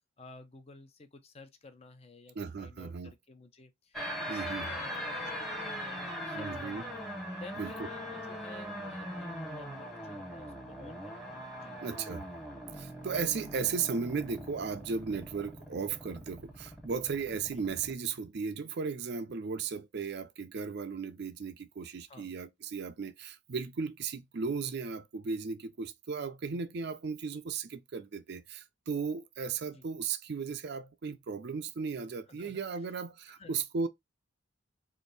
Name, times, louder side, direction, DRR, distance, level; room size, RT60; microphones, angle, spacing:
voice 1, 0.2-6.9 7.3-11.8 22.1-22.3 29.7-29.8 32.3-32.9 33.4-33.6, left 3 dB, 30° left, 0.5 m, -53 dB
voice 2, 2.4-3.1 4.3-4.7 6.3-6.8 7.6-7.7 11.8-12.3 12.7-33.9, right 5 dB, 50° right, 0.4 m, -36 dB
sound 1, 3.9-17.9, equal, ahead, 0.8 m, -41 dB
3.5 x 2.6 x 3.9 m
head